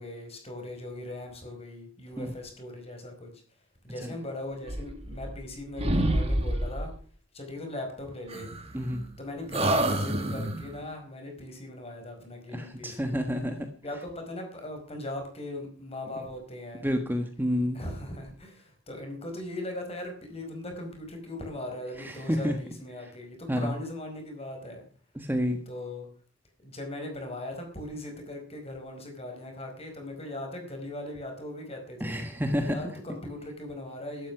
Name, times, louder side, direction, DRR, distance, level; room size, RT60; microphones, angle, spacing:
voice 1, 0.0-3.4 3.8-6.9 7.3-8.5 9.2-13.2 13.8-16.9 17.7-24.9 25.7-26.1 26.6-32.2 32.6-34.3, left 1 dB, 30° left, 4 dB, 5.0 m, -39 dB
sound 1, 4.6-5.5 5.8-7.0 8.3-9.1 9.5-10.8, right 1 dB, 30° right, 2.2 m, -28 dB
voice 2, 12.5-13.7 16.8-17.8 22.0-22.5 23.5-23.8 25.1-25.6 32.0-32.9, equal, 10° right, 6 dB, 1.4 m, -29 dB
13.0 x 12.5 x 6.1 m, 0.42 s
head